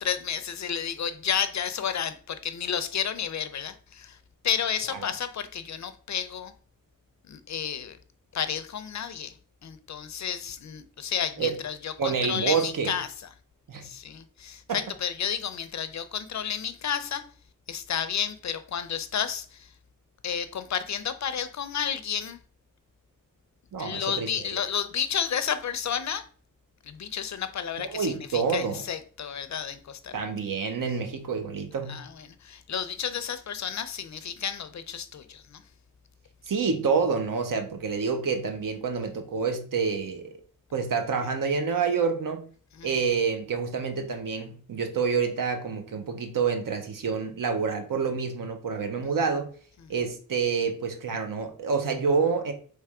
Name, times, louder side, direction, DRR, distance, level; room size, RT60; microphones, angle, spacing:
voice 1, 0.0-4.2 4.4-6.5 7.3-8.0 8.3-9.4 9.6-13.1 13.8-17.2 17.7-19.7 20.2-22.4 23.8-26.2 26.8-30.1 31.9-35.6 42.7-42.9 49.8-49.9, left 8 dB, 55° left, 0.5 m, -31 dB
voice 2, 12.0-12.9 13.7-13.9 14.7-14.8 23.7-24.6 27.8-28.8 30.1-32.0 36.5-40.4 40.7-42.4 42.8-49.5 49.9-52.5, right 5 dB, 70° right, 0.8 m, -28 dB
3.4 x 3.1 x 4.7 m
wide cardioid pair, 150°, 33 cm